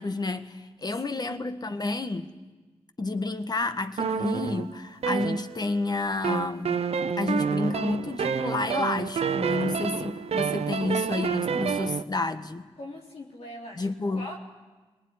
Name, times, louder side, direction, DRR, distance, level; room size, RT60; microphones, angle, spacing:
voice 1, 0.0-2.3 3.0-6.8 7.2-12.7 13.8-14.4, left 3 dB, 40° left, 1.5 m, -30 dB
voice 2, 0.8-1.4 12.8-14.4, left 1 dB, 75° left, 3.8 m, -42 dB
sound 1, 4.0-5.8 6.2-12.0, right 6 dB, 75° right, 0.8 m, -28 dB
20.0 x 20.0 x 9.7 m
cardioid pair, 45°, 11 cm